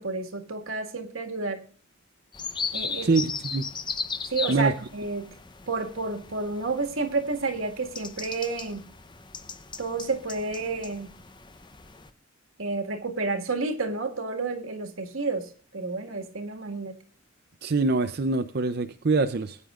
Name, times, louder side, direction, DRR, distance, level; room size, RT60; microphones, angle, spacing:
voice 1, 0.0-1.6 2.7-3.1 4.3-5.3 5.7-8.8 9.8-11.1 12.6-17.0, right 3 dB, 85° right, 4 dB, 1.9 m, -30 dB
sound 1, 2.3-12.1, left 5 dB, 20° left, 0.7 m, -37 dB
voice 2, 3.0-3.7 4.5-4.7 17.6-19.6, right 3 dB, 50° right, 8 dB, 0.6 m, -24 dB
21.0 x 9.7 x 2.5 m, 0.43 s
head